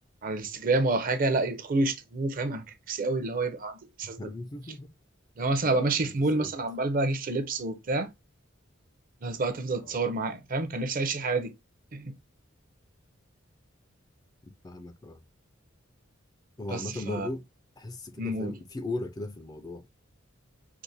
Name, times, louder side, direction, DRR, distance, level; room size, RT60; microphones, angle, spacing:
voice 1, 0.2-4.2 5.4-8.1 9.2-11.5 11.9-12.2 16.7-17.3 18.2-18.5, right 2 dB, 45° right, 0.5 m, -28 dB
voice 2, 4.2-4.9 5.6-6.5 9.8-9.9 14.6-15.2 16.6-17.4 17.8-19.8, left 2 dB, 20° left, 0.3 m, -38 dB
4.6 x 2.1 x 2.6 m
head